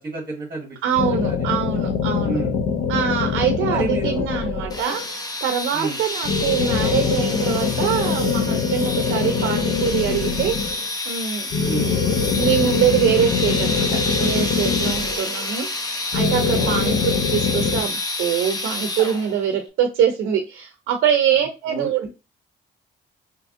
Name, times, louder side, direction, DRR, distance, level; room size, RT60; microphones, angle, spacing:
voice 1, 0.0-1.5 2.2-2.5 3.7-4.5 5.7-6.0 11.6-11.9 16.6-17.0 21.7-21.9, right 3 dB, 20° right, -3 dB, 1.5 m, -31 dB
voice 2, 0.8-2.4 2.9-5.0 5.4-11.5 12.4-13.9 14.2-17.0 17.3-22.1, right 8 dB, 80° right, 5 dB, 0.5 m, -23 dB
sound 1, 0.9-5.1 6.2-10.9 11.5-15.5 16.1-17.8, left 6 dB, 60° left, 0.6 m, -23 dB
sound 2, 4.7-19.5, left 2 dB, 20° left, 0.7 m, -29 dB
3.5 x 2.8 x 2.6 m, 0.28 s
cardioid pair, 90°, 20 cm